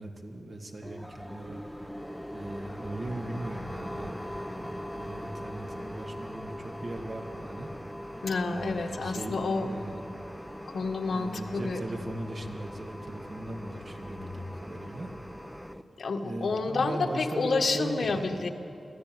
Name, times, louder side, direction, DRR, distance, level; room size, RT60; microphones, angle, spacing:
voice 1, 0.0-1.7 2.3-7.7 8.5-10.1 11.1-15.1 16.2-18.3, right 1 dB, 50° right, 2 dB, 2.4 m, -38 dB
sound 1, 0.8-15.8, equal, ahead, 0.9 m, -41 dB
voice 2, 8.2-9.7 10.7-11.8 16.0-18.5, left 3 dB, 70° left, 6 dB, 1.4 m, -29 dB
24.0 x 15.0 x 9.5 m, 2.8 s
wide cardioid pair, 100°, 0 cm